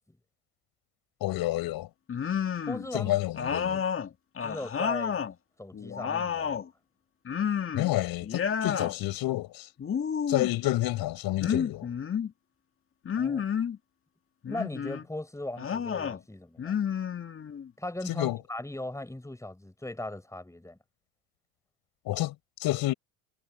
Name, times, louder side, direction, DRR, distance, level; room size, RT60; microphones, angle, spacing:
voice 1, 1.2-1.9 2.9-3.8 7.7-9.7 10.3-11.9 18.1-18.4 22.0-22.3 22.6-22.9, left 16 dB, 65° left, 6.3 m, -29 dB
sound 1, 2.1-2.9 3.3-5.3 5.7-6.7 7.3-7.9 8.2-8.9 9.8-10.6 11.4-12.3 13.1-13.8 14.4-15.1 15.6-16.2 16.6-17.7, left 7 dB, 35° left, 2.1 m, -30 dB
voice 2, 2.7-3.2 3.6-3.8 4.4-5.2 5.6-6.6 13.2-13.4 14.5-16.8 17.8-20.8, left 1 dB, 5° left, 7.7 m, -38 dB
hypercardioid pair, 70°, 40 cm